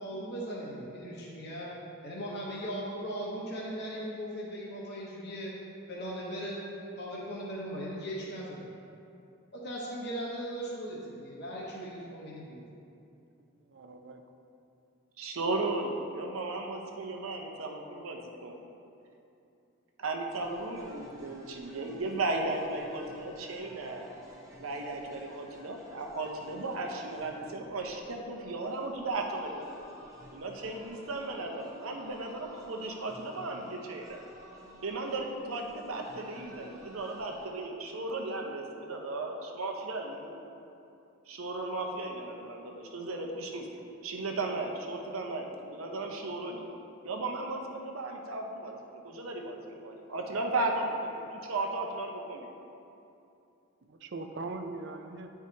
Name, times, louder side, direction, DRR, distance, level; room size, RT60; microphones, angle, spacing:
voice 1, 0.0-1.7 2.0-5.5 5.9-6.6 7.0-8.7 9.5-12.6, equal, 55° left, -6 dB, 1.0 m, -38 dB
voice 2, 13.6-14.2 53.9-55.3, right 3 dB, 55° right, 6 dB, 0.5 m, -41 dB
voice 3, 15.2-18.6 20.0-24.1 24.6-29.7 30.3-34.2 34.8-40.4 41.3-43.7 44.0-46.6 47.0-52.5, right 2 dB, 85° right, 2 dB, 0.8 m, -35 dB
sound 1, 20.3-37.5, equal, 15° right, 0.9 m, -54 dB
10.0 x 4.7 x 2.8 m, 2.7 s
head